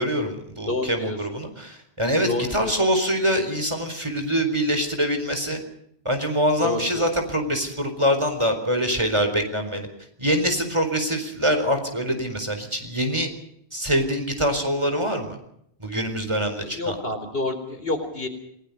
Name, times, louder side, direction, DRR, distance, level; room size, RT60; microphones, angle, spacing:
voice 1, 0.0-5.6 6.0-9.9 10.2-13.3 13.7-15.4 15.8-16.9, equal, 25° right, 6 dB, 4.3 m, -24 dB
voice 2, 0.7-1.2 2.3-2.7 6.6-7.0 16.6-18.3, left 2 dB, 65° left, 6 dB, 4.3 m, -28 dB
29.0 x 19.0 x 5.4 m, 0.73 s
omnidirectional pair, 1.1 m